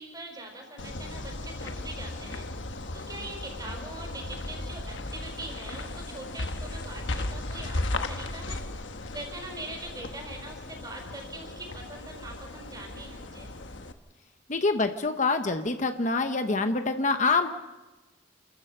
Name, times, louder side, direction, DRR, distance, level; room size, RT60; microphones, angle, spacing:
voice 1, 0.0-13.5, right 2 dB, 20° right, 2 dB, 5.2 m, -43 dB
sound 1, 0.8-13.9, left 2 dB, 90° left, 1.3 m, -36 dB
voice 2, 14.5-17.5, left 3 dB, 40° left, 7 dB, 0.9 m, -26 dB
28.5 x 14.5 x 6.6 m, 1.2 s
head